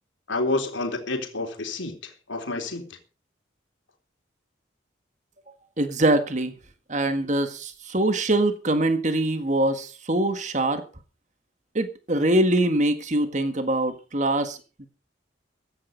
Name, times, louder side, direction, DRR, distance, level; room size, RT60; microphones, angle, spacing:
voice 1, 0.3-2.9, left 2 dB, 80° left, 3.5 m, -29 dB
voice 2, 5.8-6.5 6.9-10.8 11.7-14.6, right 1 dB, 40° right, 1.7 m, -23 dB
15.5 x 10.5 x 5.3 m
head